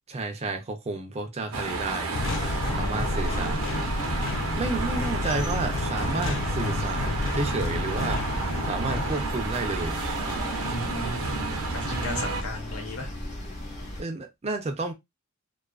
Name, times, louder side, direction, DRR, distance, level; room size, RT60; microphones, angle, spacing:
voice 1, 0.1-2.1 2.8-3.7 4.5-8.2 8.6-10.0 14.0-14.9, right 3 dB, 30° right, 0.5 m, -31 dB
sound 1, 1.5-12.4, right 3 dB, 75° right, 0.7 m, -31 dB
sound 2, 2.1-9.1, left 3 dB, 60° left, 0.3 m, -32 dB
sound 3, 2.2-14.0, equal, 35° left, 0.7 m, -35 dB
voice 2, 2.6-4.0 10.6-13.1, left 1 dB, 85° left, 0.9 m, -36 dB
2.3 x 2.3 x 2.3 m
head